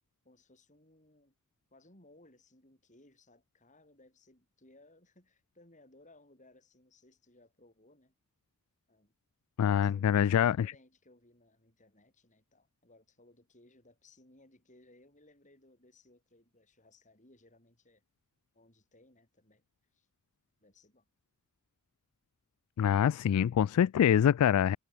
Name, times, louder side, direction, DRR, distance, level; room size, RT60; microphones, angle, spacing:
voice 1, 0.2-1.4 1.7-8.1 8.9-9.1 9.8-18.0 18.5-19.6 19.9-20.1 20.6-21.0, left 2 dB, 35° left, 6.9 m, -62 dB
voice 2, 9.6-10.7 22.8-24.8, left 9 dB, 80° left, 0.3 m, -25 dB
head